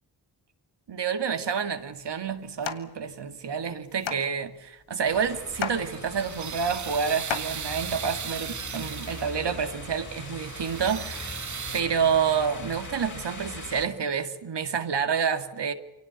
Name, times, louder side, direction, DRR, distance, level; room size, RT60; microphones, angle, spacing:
voice 1, 0.9-11.4 11.7-15.7, right 6 dB, 65° right, 2.2 m, -28 dB
sound 1, 1.7-8.2, left 6 dB, 80° left, 1.8 m, -38 dB
sound 2, 5.1-13.9, left 2 dB, 40° left, 6.3 m, -41 dB
sound 3, 5.6-9.5 10.0-11.8, right 7 dB, 40° right, 0.8 m, -37 dB
24.0 x 18.0 x 9.3 m
supercardioid pair, 40°, 44 cm